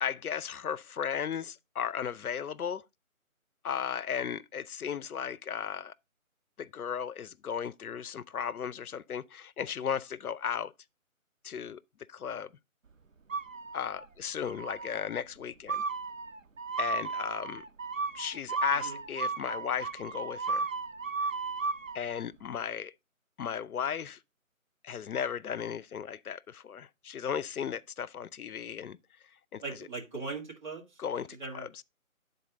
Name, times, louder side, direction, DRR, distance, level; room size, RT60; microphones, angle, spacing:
voice 1, 0.0-2.8 3.6-5.9 6.6-10.7 11.4-11.8 12.1-12.5 13.7-15.8 16.8-17.6 18.1-20.7 21.9-22.9 23.4-24.2 24.8-29.0 29.5-29.6 31.0-31.3 31.5-31.8, left 8 dB, 90° left, 0.6 m, -35 dB
sound 1, 13.3-14.0 14.4-15.0 15.7-22.0, right 4 dB, 65° right, 1.0 m, -35 dB
voice 2, 29.6-31.0 31.4-31.7, right 3 dB, 35° right, 2.2 m, -39 dB
10.5 x 4.0 x 3.8 m
figure-of-eight pair, 165°, 42 cm